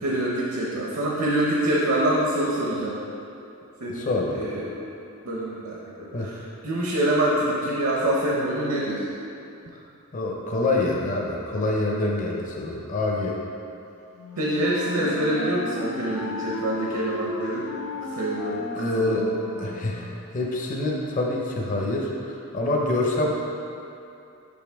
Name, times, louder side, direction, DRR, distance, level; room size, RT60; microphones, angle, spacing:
voice 1, 0.0-3.0 3.8-4.1 4.3-4.9 5.2-9.1 14.4-17.7 18.0-19.3, right 1 dB, 65° right, -4 dB, 0.7 m, -26 dB
voice 2, 3.9-4.4 6.1-6.3 10.1-13.4 18.7-19.3 19.6-23.4, left 2 dB, 35° left, -2 dB, 0.5 m, -26 dB
Wind instrument woodwind instrument, 14.1-20.2, left 2 dB, 75° left, 0.6 m, -34 dB
5.4 x 5.2 x 3.4 m, 2.7 s
head